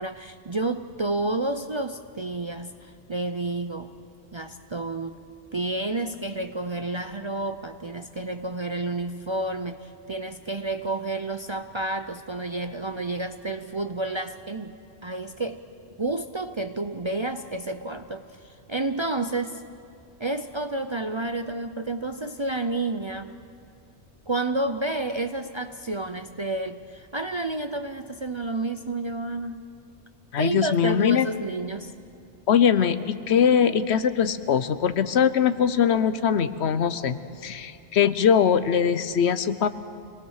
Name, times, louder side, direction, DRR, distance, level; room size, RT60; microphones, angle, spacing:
voice 1, 0.0-3.9 4.3-5.2 5.5-14.8 15.0-15.6 16.0-19.6 20.2-23.3 24.3-29.7 30.4-31.9, right 2 dB, 35° right, 7 dB, 0.5 m, -30 dB
voice 2, 30.3-31.3 32.5-39.7, left 7 dB, 75° left, 12 dB, 1.1 m, -22 dB
26.0 x 19.5 x 6.5 m, 2.5 s
omnidirectional pair, 1.1 m